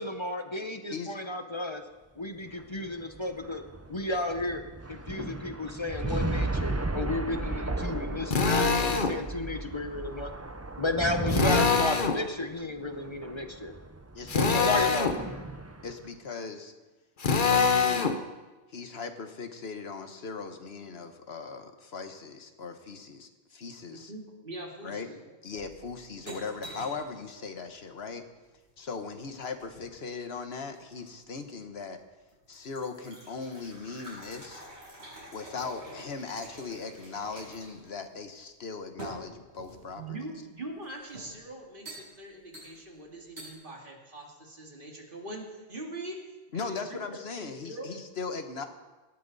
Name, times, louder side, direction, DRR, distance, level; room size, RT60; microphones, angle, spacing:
voice 1, 0.0-1.8 2.2-3.6 3.9-4.6 4.9-10.3 10.8-13.8 14.3-15.5, left 2 dB, 25° left, 6 dB, 0.9 m, -33 dB
sound 1, 2.5-16.1, right 2 dB, 15° right, 0.6 m, -35 dB
Drill, 8.3-9.2 11.3-12.2 14.3-15.2 17.2-18.2, left 5 dB, 50° left, 1.1 m, -24 dB
voice 2, 14.1-14.8 15.8-16.7 17.4-18.2 18.7-24.1 24.8-25.1 25.4-28.2 28.8-32.0 32.5-34.6 35.3-40.2 46.5-48.6, left 4 dB, 65° left, 7 dB, 1.5 m, -39 dB
voice 3, 23.9-25.4 39.9-46.2 46.5-47.9, right 1 dB, 50° right, 0 dB, 2.4 m, -42 dB
sound 2, 25.5-27.1 28.6-30.0 30.7-31.4 31.9-32.0 32.3-37.9 38.1-38.2 39.0-40.0 40.8-41.4 41.8-42.1 42.5-43.0 43.4-43.5, right 1 dB, 75° right, 7.1 m, -47 dB
18.5 x 13.5 x 4.1 m, 1.2 s
omnidirectional pair, 1.1 m